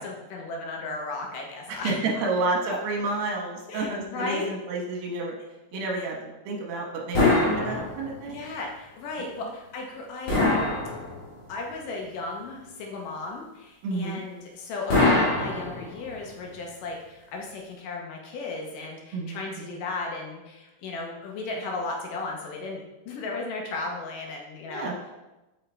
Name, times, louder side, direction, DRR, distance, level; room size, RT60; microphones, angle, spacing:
voice 1, 0.0-2.0 2.7-2.8 3.7-4.5 5.7-6.1 8.3-10.7 11.5-24.9, left 3 dB, 70° left, 0 dB, 2.3 m, -35 dB
voice 2, 1.7-5.3 5.7-8.4 9.2-9.3 13.8-14.2 19.1-19.8 24.7-24.9, right 3 dB, 80° right, 0 dB, 2.8 m, -30 dB
sound 1, 7.1-8.3 10.3-11.5 14.9-16.2, left 2 dB, 40° left, 2.3 m, -23 dB
7.2 x 5.6 x 3.3 m, 1.0 s
omnidirectional pair, 4.2 m